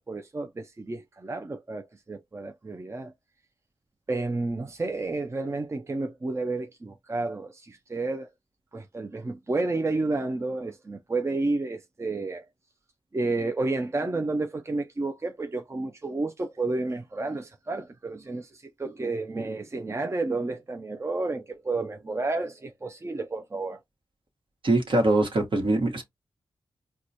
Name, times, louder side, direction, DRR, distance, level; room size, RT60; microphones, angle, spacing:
voice 1, 0.1-3.1 4.1-8.3 8.7-12.5 13.1-23.8, right 3 dB, 30° right, 0.5 m, -31 dB
voice 2, 24.6-26.0, right 2 dB, 65° right, 1.3 m, -23 dB
4.6 x 2.2 x 2.8 m
cardioid pair, 45°, 9 cm